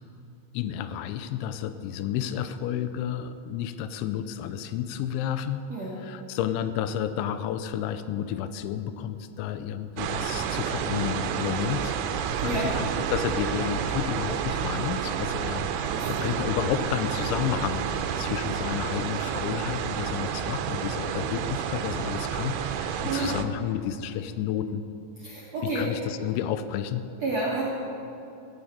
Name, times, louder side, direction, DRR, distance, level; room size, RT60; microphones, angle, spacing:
voice 1, 0.5-5.6 6.0-12.0 12.4-24.8 25.6-27.0, left 10 dB, 85° left, 11 dB, 2.9 m, -31 dB
sound 1, 10.0-23.4, right 8 dB, 80° right, 3.0 m, -30 dB
voice 2, 12.4-12.7 15.9-16.3 23.0-23.3 25.2-25.9 27.2-27.6, right 2 dB, 60° right, -6 dB, 1.7 m, -30 dB
17.5 x 6.6 x 8.4 m, 2.8 s
omnidirectional pair, 5.4 m